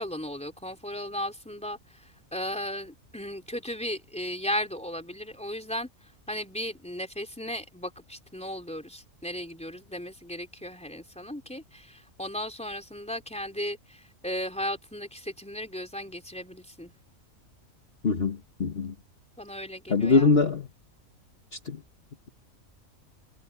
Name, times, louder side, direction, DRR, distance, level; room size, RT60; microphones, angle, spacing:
voice 1, 0.0-5.9 6.3-16.9 19.4-20.4, equal, 5° left, 3.8 m, -36 dB
voice 2, 18.0-18.9 19.9-20.7 21.5-21.8, left 4 dB, 45° left, 1.6 m, -23 dB
omnidirectional pair, 1.4 m